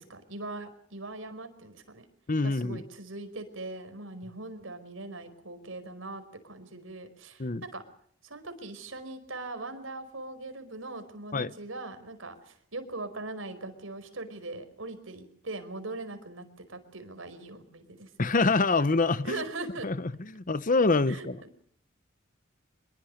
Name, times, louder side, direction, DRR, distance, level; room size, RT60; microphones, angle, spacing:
voice 1, 0.0-2.1 2.4-7.8 8.2-18.1 19.2-19.9 21.1-21.3, right 2 dB, 75° right, 5.0 m, -40 dB
voice 2, 2.3-2.8 7.4-7.6 11.3-11.5 18.2-19.4 19.8-21.4, left 3 dB, 40° left, 0.9 m, -26 dB
25.5 x 22.0 x 6.5 m
head